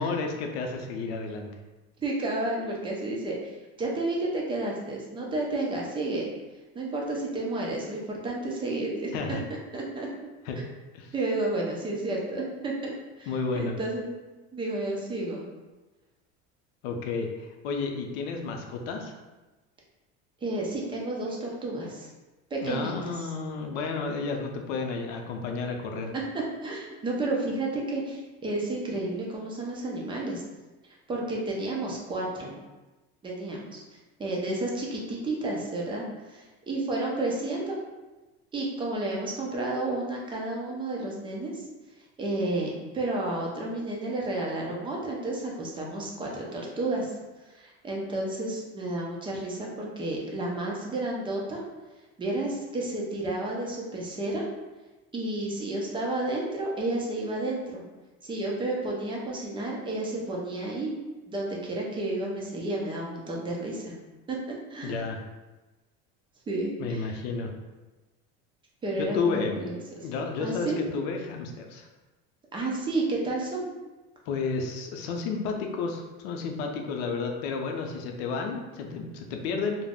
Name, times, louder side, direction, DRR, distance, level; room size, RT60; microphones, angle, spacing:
voice 1, 0.0-1.5 9.1-9.4 10.5-10.6 10.9-11.1 13.3-13.8 16.8-19.1 22.6-26.1 64.8-65.2 66.8-67.5 69.0-69.6 70.0-71.9 74.3-79.8, left 4 dB, 85° left, 3 dB, 0.5 m, -31 dB
voice 2, 2.0-6.3 6.7-9.4 9.7-10.1 11.1-12.9 13.2-14.1 14.5-15.5 20.4-22.1 22.5-23.3 26.1-30.4 31.1-32.5 33.2-37.8 38.5-41.6 42.2-47.1 47.5-51.6 52.2-54.4 55.1-57.8 58.2-60.9 61.3-63.9 64.3-64.4 64.7-65.0 66.5-67.2 68.8-69.7 70.4-70.8 72.5-73.7, right 2 dB, 15° right, -3 dB, 0.4 m, -31 dB
2.3 x 2.0 x 3.4 m, 1.1 s
cardioid pair, 135°, 30 cm